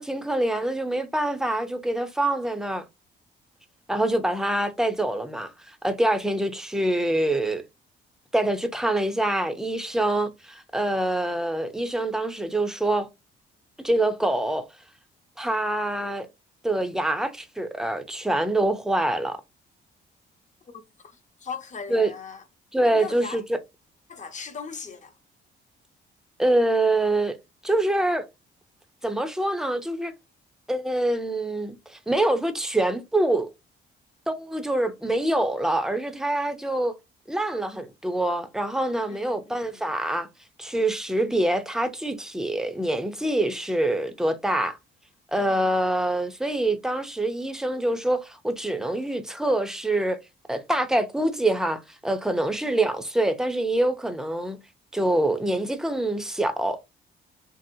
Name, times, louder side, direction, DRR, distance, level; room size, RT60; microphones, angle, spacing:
voice 1, 0.0-2.8 3.9-7.6 8.3-13.1 13.8-14.7 15.4-16.3 16.6-19.4 21.9-22.1 22.7-23.6 26.4-27.4 27.6-28.2 29.0-30.1 30.7-33.5 34.3-36.9 37.3-40.3 40.6-44.8 45.3-50.2 50.5-54.6 54.9-56.8, right 1 dB, 5° right, 0.5 m, -25 dB
voice 2, 20.7-22.4 22.8-23.4 24.1-25.1 39.1-39.8 45.4-45.7 52.5-52.7, left 5 dB, 40° left, 0.8 m, -40 dB
2.9 x 2.8 x 2.6 m
cardioid pair, 90°, 20 cm